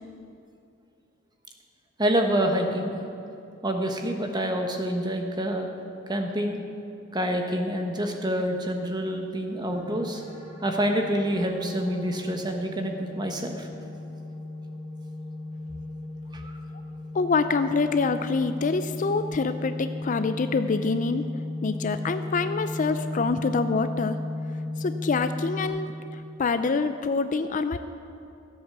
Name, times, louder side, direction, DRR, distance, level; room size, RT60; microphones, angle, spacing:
voice 1, 2.0-3.0 3.6-5.7 6.1-6.6 7.1-10.2 10.6-13.7 16.3-16.6, equal, 20° right, 3 dB, 1.1 m, -27 dB
sound 1, 9.7-25.7, left 2 dB, 15° left, 3.6 m, -35 dB
voice 2, 17.1-21.3 21.6-24.2 24.8-27.8, left 4 dB, 40° left, 10 dB, 0.4 m, -26 dB
14.5 x 8.1 x 6.7 m, 2.6 s
head